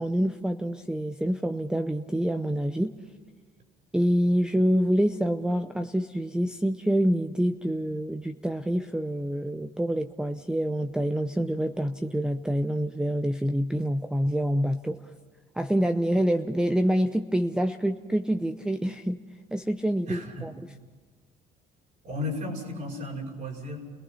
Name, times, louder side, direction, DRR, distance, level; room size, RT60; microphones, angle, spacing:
voice 1, 0.0-2.9 3.9-15.1 15.6-19.2 19.5-20.5, equal, 5° right, 8 dB, 0.7 m, -26 dB
voice 2, 20.1-20.5 22.0-23.8, left 1 dB, 50° right, 1 dB, 6.7 m, -34 dB
30.0 x 18.5 x 5.7 m, 1.4 s
cardioid pair, 110°, 17 cm